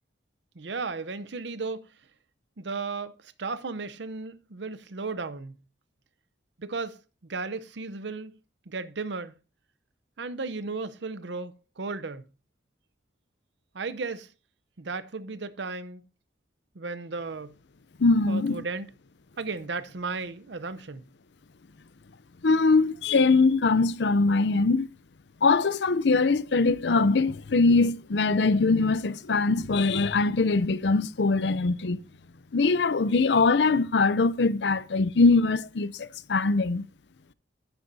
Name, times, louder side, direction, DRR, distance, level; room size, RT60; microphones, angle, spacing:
voice 1, 0.6-1.9 2.6-5.6 6.6-7.0 7.3-8.4 8.7-9.3 10.2-12.2 13.7-14.3 14.8-16.0 16.7-17.5 18.3-18.9 19.4-21.0, right 4 dB, 70° right, 0.7 m, -35 dB
voice 2, 18.0-18.6 22.4-24.9 25.4-32.0 32.5-36.9, left 3 dB, 65° left, 0.6 m, -22 dB
12.5 x 9.9 x 2.7 m
head